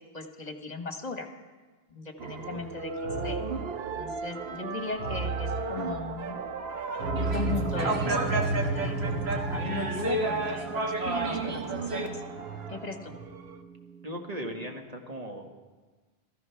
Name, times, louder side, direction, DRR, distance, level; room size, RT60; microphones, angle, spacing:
voice 1, 0.1-1.3 1.9-3.5 4.0-6.4 7.1-12.2 12.7-13.2, left 3 dB, 40° left, 5 dB, 1.4 m, -38 dB
voice 2, 2.2-2.6 14.0-15.5, equal, 40° right, 2 dB, 1.5 m, -38 dB
sound 1, 2.2-13.6, right 3 dB, 70° right, 1.1 m, -35 dB
sound 2, 7.0-14.8, right 4 dB, 5° left, 1.8 m, -42 dB
sound 3, 7.2-12.1, right 2 dB, 90° right, 1.7 m, -30 dB
15.0 x 14.5 x 5.8 m, 1.3 s
omnidirectional pair, 1.0 m